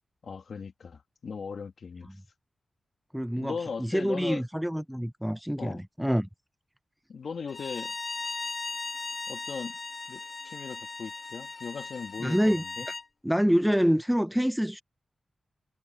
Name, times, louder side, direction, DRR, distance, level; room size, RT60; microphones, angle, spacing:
voice 1, 0.2-2.1 3.4-4.4 5.6-5.8 7.1-7.9 9.3-9.8 10.1-12.9, left 5 dB, 70° left, 1.9 m, -38 dB
voice 2, 3.1-6.3 12.2-12.6 13.2-14.8, equal, ahead, 0.6 m, -26 dB
Bowed string instrument, 7.5-13.1, left 3 dB, 40° left, 1.6 m, -38 dB
wide cardioid pair, 115°, 0 cm